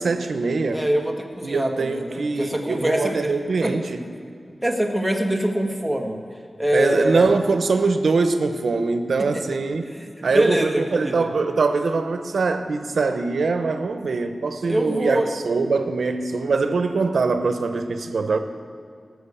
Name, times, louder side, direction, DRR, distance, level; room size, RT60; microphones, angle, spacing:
voice 1, 0.0-0.8 1.4-4.0 6.7-9.8 10.2-18.4, right 4 dB, 85° right, 8 dB, 0.8 m, -23 dB
voice 2, 0.7-3.3 3.6-3.7 4.6-6.2 6.6-7.3 9.2-9.6 9.9-11.3 14.7-15.3, right 1 dB, ahead, 1 dB, 1.5 m, -24 dB
17.0 x 6.3 x 8.4 m, 2.3 s
wide cardioid pair, 105°, 0 cm